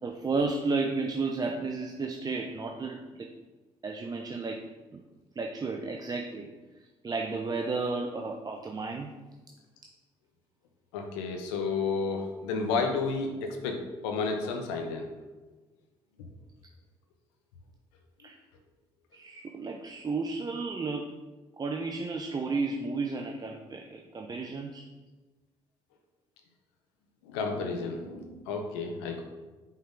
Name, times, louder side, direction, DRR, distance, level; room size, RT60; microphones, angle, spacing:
voice 1, 0.0-3.3 3.8-5.0 5.4-6.5 7.0-9.1 18.2-18.4 19.1-21.1 21.6-24.8, right 3 dB, 30° right, 2 dB, 0.4 m, -33 dB
voice 2, 10.9-15.1 27.2-29.2, left 4 dB, 85° left, 3 dB, 0.5 m, -31 dB
5.3 x 3.5 x 2.5 m, 1.2 s
hypercardioid pair, 50°, 14 cm